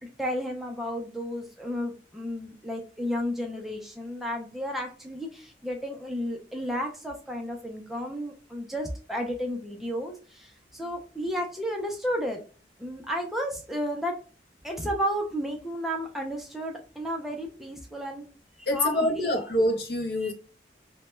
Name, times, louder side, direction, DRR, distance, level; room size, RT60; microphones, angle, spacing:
voice 1, 0.0-12.4 12.8-14.2 14.6-18.3 18.6-19.3 20.2-20.3, equal, ahead, 0.3 m, -32 dB
voice 2, 18.7-20.3, left 1 dB, 55° left, 0.5 m, -26 dB
2.1 x 2.0 x 2.9 m
head